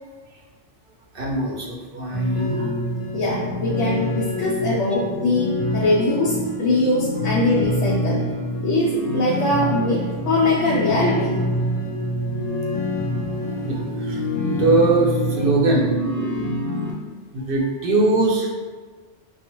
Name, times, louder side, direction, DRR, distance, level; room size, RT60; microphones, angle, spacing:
voice 1, 1.1-2.7 13.6-15.9 17.3-18.5, right 2 dB, 55° right, -2 dB, 0.8 m, -21 dB
sound 1, 2.1-16.9, left 1 dB, 40° left, 0.6 m, -26 dB
voice 2, 3.1-8.2 8.6-11.4, left 2 dB, 80° left, -6 dB, 1.0 m, -22 dB
5.4 x 2.4 x 3.0 m, 1.4 s
omnidirectional pair, 1.2 m